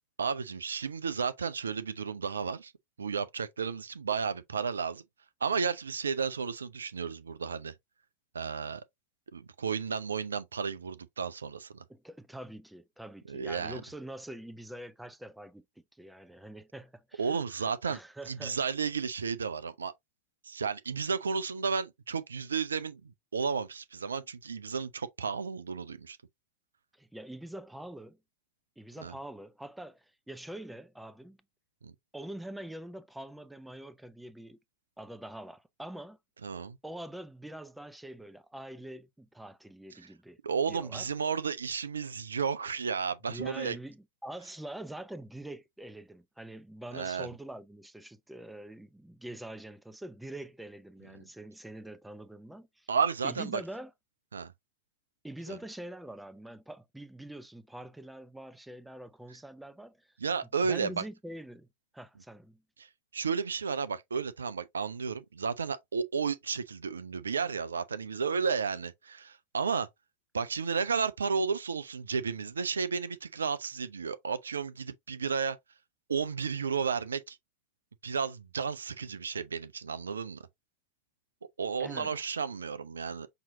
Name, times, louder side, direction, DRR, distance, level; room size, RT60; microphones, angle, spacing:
voice 1, 0.2-2.7 3.0-5.0 5.4-7.7 8.3-8.8 9.3-11.8 13.3-13.8 17.2-18.0 18.3-19.9 20.4-26.2 29.0-29.1 31.8-31.9 36.4-36.8 40.4-43.8 46.9-47.3 52.9-53.6 54.3-54.5 55.5-55.6 60.2-61.0 62.8-69.9 70.3-75.6 76.1-77.4 78.0-80.4 81.6-83.3, right 5 dB, 70° right, 0.4 m, -33 dB
voice 2, 11.9-15.7 15.9-18.6 26.9-28.2 28.8-31.4 32.1-34.6 35.0-36.2 36.8-40.4 40.7-41.1 43.3-52.9 53.2-53.9 55.2-60.1 60.6-61.7 61.9-62.6 81.8-82.3, right 1 dB, 5° right, 0.4 m, -44 dB
5.6 x 2.9 x 2.6 m
figure-of-eight pair, 90°, 0 cm